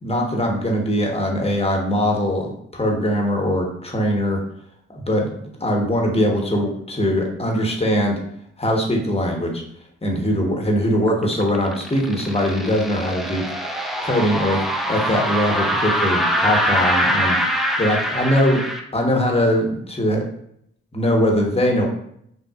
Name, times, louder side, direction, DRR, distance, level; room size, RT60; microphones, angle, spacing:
voice 1, 0.0-4.4 4.9-8.2 8.6-9.6 10.0-14.6 14.9-18.6 18.9-20.3 20.9-21.9, equal, 20° left, 0 dB, 1.2 m, -21 dB
sound 1, 11.1-18.8, equal, ahead, 0.6 m, -23 dB
5.9 x 2.4 x 2.4 m, 0.71 s
supercardioid pair, 45°, 31 cm